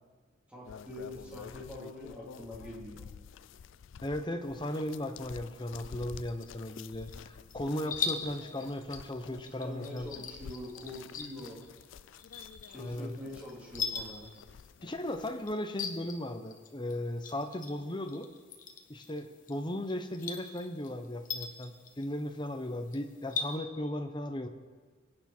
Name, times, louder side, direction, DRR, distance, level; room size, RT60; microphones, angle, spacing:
voice 1, 0.5-3.1 9.2-11.6 12.7-14.3, left 1 dB, 5° right, -6 dB, 3.6 m, -44 dB
sound 1, 0.6-15.5, left 7 dB, 65° left, 0.3 m, -50 dB
voice 2, 4.0-10.1 12.8-13.1 14.8-18.3 18.9-24.5, left 1 dB, 25° left, 7 dB, 0.9 m, -36 dB
sound 2, 4.4-23.6, left 5 dB, 40° left, 1.1 m, -43 dB
23.0 x 9.5 x 4.5 m, 1.5 s
head